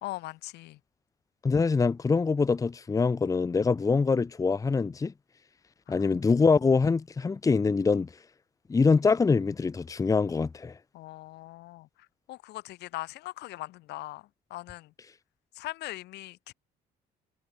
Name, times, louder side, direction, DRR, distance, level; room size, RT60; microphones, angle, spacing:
voice 1, 0.0-0.8 5.9-6.1 10.9-11.9 12.3-14.9 15.5-16.5, left 17 dB, 80° left, 2.5 m, -40 dB
voice 2, 1.4-5.1 5.9-8.1 8.7-10.7, left 4 dB, 20° left, 0.8 m, -24 dB
cardioid pair, 110°, 17 cm